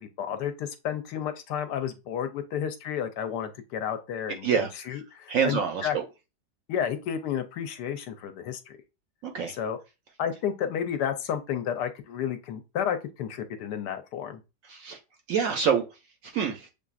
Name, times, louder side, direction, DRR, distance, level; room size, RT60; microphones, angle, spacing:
voice 1, 0.0-6.0 6.7-8.8 9.5-9.8 10.2-14.4, left 8 dB, 80° left, 1.2 m, -31 dB
voice 2, 5.3-6.0 9.2-9.5 14.7-15.0 15.3-15.8 16.2-16.7, right 7 dB, 65° right, 0.9 m, -26 dB
7.0 x 2.6 x 2.4 m
omnidirectional pair, 1.8 m